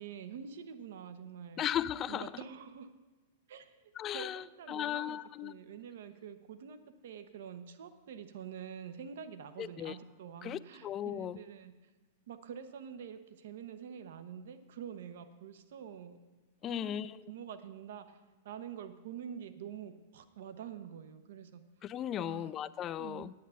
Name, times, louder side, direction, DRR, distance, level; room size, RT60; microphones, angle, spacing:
voice 1, 0.0-1.6 2.1-2.9 3.5-11.7 12.3-16.2 16.6-18.2 18.4-21.6 22.2-22.5 23.0-23.3, right 8 dB, 70° right, 10 dB, 0.8 m, -46 dB
voice 2, 1.6-2.3 4.0-5.6 9.6-10.0 10.4-11.4 16.6-17.3 21.8-23.3, left 11 dB, 30° left, 17 dB, 0.4 m, -37 dB
9.3 x 8.2 x 5.6 m, 1.2 s
hypercardioid pair, 110°, 0 cm